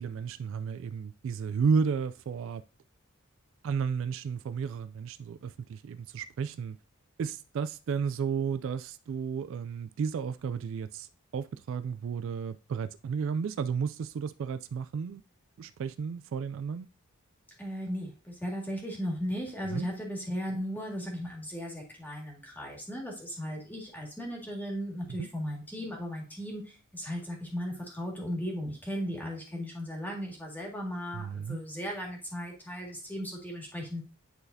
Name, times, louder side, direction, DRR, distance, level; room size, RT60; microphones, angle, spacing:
voice 1, 0.0-2.6 3.6-6.8 7.2-11.1 11.3-15.2 15.6-16.9 19.7-19.9 25.1-25.3 31.1-31.6, right 6 dB, 60° right, 0.3 m, -33 dB
voice 2, 17.6-34.0, equal, 10° left, 1.9 m, -36 dB
10.0 x 4.0 x 2.7 m
head